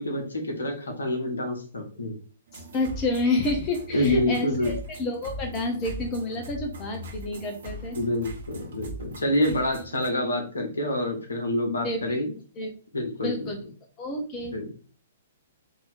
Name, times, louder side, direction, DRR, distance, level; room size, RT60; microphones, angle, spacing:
voice 1, 0.0-2.2 3.9-4.7 7.9-12.3 12.9-13.5 14.5-14.7, left 1 dB, 70° left, 2 dB, 1.2 m, -27 dB
voice 2, 2.5-8.0 11.8-12.2 12.6-12.7 13.2-13.6 14.0-14.7, left 2 dB, 30° left, 3 dB, 0.7 m, -29 dB
sound 1, 2.5-10.1, right 1 dB, 55° right, 1.2 m, -40 dB
3.8 x 2.9 x 4.0 m, 0.41 s
figure-of-eight pair, 115°, 0 cm